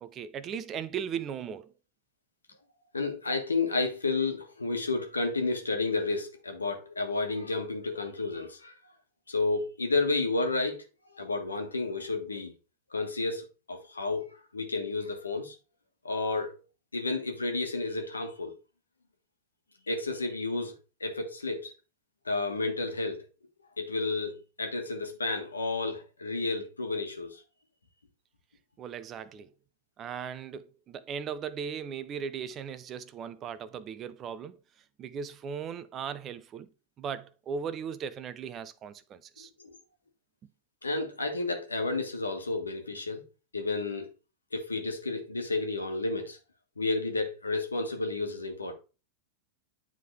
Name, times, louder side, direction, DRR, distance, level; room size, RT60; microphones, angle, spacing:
voice 1, 0.0-1.7 28.8-29.5 30.0-34.6 35.0-36.7 37.0-39.5, right 7 dB, 35° right, 0.6 m, -37 dB
voice 2, 2.9-8.7 9.3-10.8 11.1-12.5 12.9-14.2 14.5-15.5 16.0-16.6 16.9-18.5 19.9-20.7 21.0-21.7 22.2-23.3 23.8-27.4 39.6-39.7 40.8-43.2 43.5-44.1 44.5-46.4 46.8-48.7, left 3 dB, 90° left, 1.3 m, -31 dB
9.2 x 3.7 x 3.3 m
hypercardioid pair, 95°, 0 cm